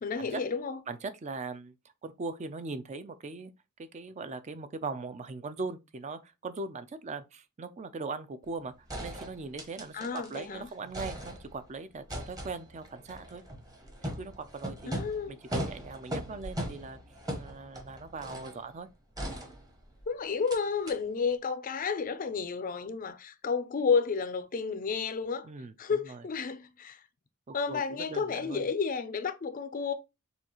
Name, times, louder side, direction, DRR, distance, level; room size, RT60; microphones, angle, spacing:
voice 1, 0.0-0.8 9.9-10.7 14.9-15.3 20.1-25.5 25.8-27.0 27.5-29.9, left 5 dB, 40° left, 0.4 m, -31 dB
voice 2, 0.9-1.7 2.0-3.5 3.8-8.7 9.0-13.4 14.0-17.0 17.4-18.9 25.4-26.2 27.5-28.7, right 3 dB, 35° right, 0.4 m, -40 dB
sound 1, 8.4-8.5 8.9-10.4 10.7-11.7 12.1-18.6 19.2-20.0 20.5-20.6 20.9-21.0, equal, 20° right, 0.9 m, -39 dB
6.8 x 2.4 x 2.9 m
head